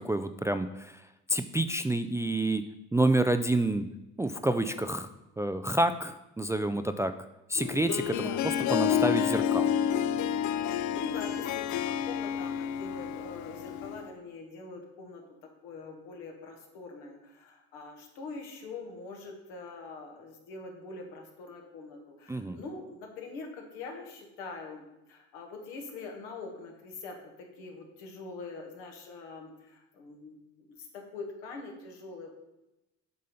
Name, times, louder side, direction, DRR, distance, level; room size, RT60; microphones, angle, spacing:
voice 1, 0.0-2.6 2.9-3.9 4.2-5.1 5.4-7.1 7.5-9.7 22.3-22.6, right 1 dB, 10° right, 9 dB, 0.3 m, -28 dB
Harp, 7.6-14.1, left 9 dB, 55° left, 0.5 m, -29 dB
voice 2, 8.1-8.4 10.7-15.2 15.6-24.8 25.1-30.4 30.9-32.3, left 3 dB, 80° left, 2 dB, 1.5 m, -44 dB
7.7 x 3.7 x 5.6 m, 0.96 s
hypercardioid pair, 65°, 36 cm